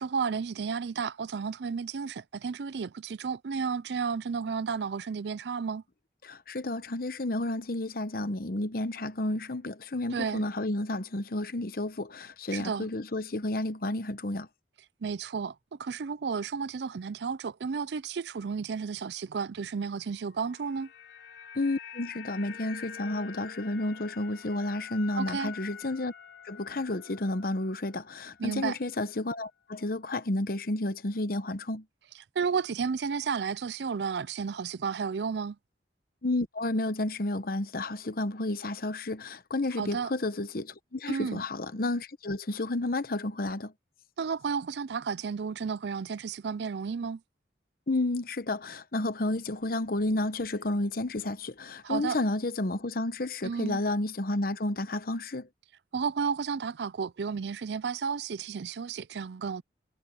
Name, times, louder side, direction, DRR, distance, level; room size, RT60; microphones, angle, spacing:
voice 1, 0.0-5.8 10.1-10.4 12.5-12.9 15.0-20.9 25.2-25.5 28.4-28.8 32.4-35.6 39.8-40.1 41.1-41.4 44.2-47.2 51.8-52.2 53.4-53.8 55.9-59.6, right 5 dB, 70° right, 0.4 m, -32 dB
voice 2, 6.2-14.5 21.6-26.1 26.4-31.8 36.2-43.7 47.9-55.5, left 2 dB, 55° left, 1.0 m, -31 dB
sound 1, 20.3-28.6 28.9-29.1, left 7 dB, 80° left, 3.6 m, -46 dB
head